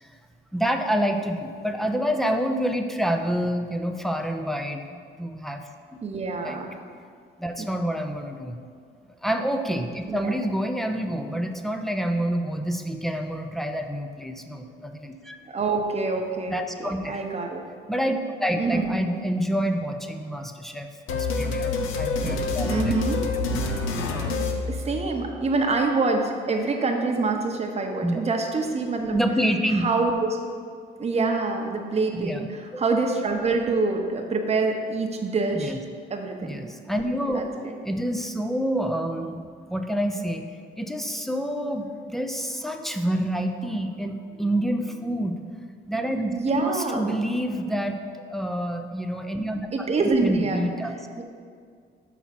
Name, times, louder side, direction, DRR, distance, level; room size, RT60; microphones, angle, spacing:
voice 1, 0.5-5.6 5.9-6.0 6.4-6.6 7.4-8.6 9.2-15.4 16.5-17.2 17.9-22.9 24.1-24.4 28.0-28.2 29.1-29.9 32.1-32.5 32.7-32.8 35.5-35.8 36.4-37.4 37.8-40.4 40.8-45.4 45.9-49.9 50.2-51.0, equal, ahead, 4 dB, 0.5 m, -28 dB
voice 2, 6.0-6.8 7.6-7.7 10.1-10.4 15.5-17.6 18.5-19.0 22.6-23.3 24.7-29.2 29.7-30.4 31.0-35.8 36.1-36.6 37.3-37.7 46.3-47.0 49.7-50.7 51.2-51.3, right 3 dB, 30° right, 2 dB, 0.9 m, -26 dB
sound 1, 21.1-25.4, left 3 dB, 80° left, 0.7 m, -27 dB
6.0 x 4.1 x 5.9 m, 2.1 s
cardioid pair, 90°, 20 cm